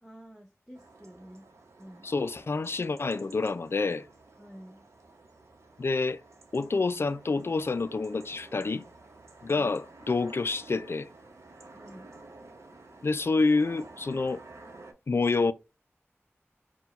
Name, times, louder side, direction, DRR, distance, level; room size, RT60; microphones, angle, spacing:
voice 1, 0.0-1.4 1.8-2.1 4.4-4.8 11.7-12.1, equal, ahead, 0.9 m, -49 dB
sound 1, 0.7-14.9, right 3 dB, 80° right, 0.8 m, -52 dB
voice 2, 2.0-4.1 5.8-6.2 6.5-8.9 9.4-11.1 13.0-14.4 15.1-15.5, left 3 dB, 60° left, 0.4 m, -28 dB
4.4 x 2.2 x 4.0 m
wide cardioid pair, 70°, 5 cm